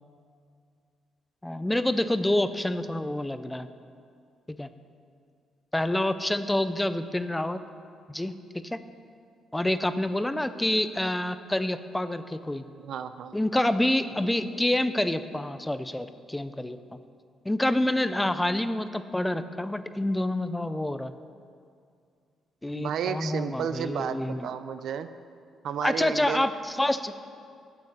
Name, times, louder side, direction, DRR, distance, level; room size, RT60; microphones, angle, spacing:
voice 1, 1.4-3.7 4.5-4.7 5.7-7.6 8.1-8.8 9.5-12.6 13.3-16.8 17.4-21.1 22.6-24.5 25.8-27.1, left 1 dB, 10° left, 12 dB, 0.4 m, -27 dB
voice 2, 12.8-13.4 22.7-25.1 25.6-26.5, right 7 dB, 70° right, 11 dB, 0.5 m, -32 dB
9.2 x 7.5 x 6.5 m, 2.3 s
cardioid pair, 90°, 0 cm